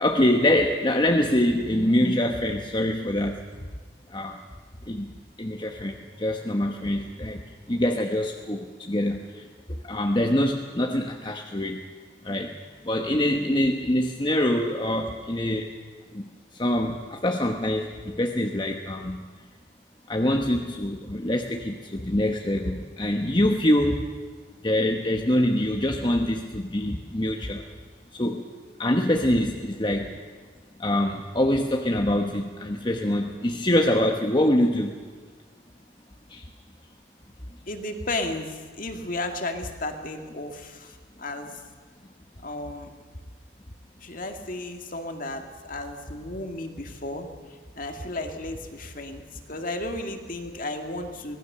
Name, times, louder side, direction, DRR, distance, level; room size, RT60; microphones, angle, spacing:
voice 1, 0.0-3.4 4.1-4.4 4.9-5.1 5.4-7.4 7.7-9.4 9.7-11.8 12.2-12.5 12.8-15.7 16.1-16.3 16.5-19.2 20.1-24.1 24.6-27.6 28.1-28.5 28.8-30.2 30.8-34.9 36.3-36.4, left 1 dB, 25° left, 2 dB, 1.1 m, -24 dB
voice 2, 37.7-41.6 42.4-42.9 44.0-51.4, left 2 dB, 45° left, 5 dB, 2.1 m, -34 dB
25.0 x 18.5 x 6.8 m, 1.5 s
head